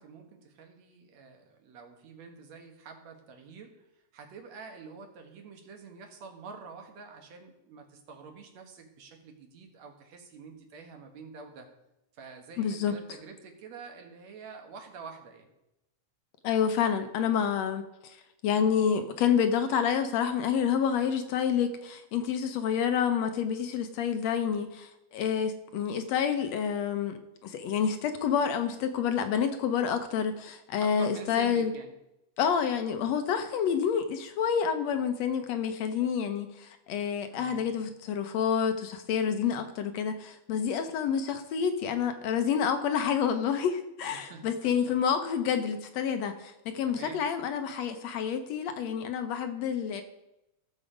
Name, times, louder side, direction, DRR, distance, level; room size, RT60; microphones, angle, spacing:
voice 1, 0.0-3.7 4.1-11.7 12.1-15.5 30.8-31.9 37.3-37.7 44.1-44.9 46.9-47.2, right 5 dB, 70° right, 3 dB, 2.6 m, -47 dB
voice 2, 12.6-13.0 16.4-18.2 18.4-31.7 32.4-50.0, left 7 dB, 75° left, 7 dB, 1.9 m, -28 dB
15.0 x 6.9 x 5.0 m, 0.90 s
omnidirectional pair, 3.3 m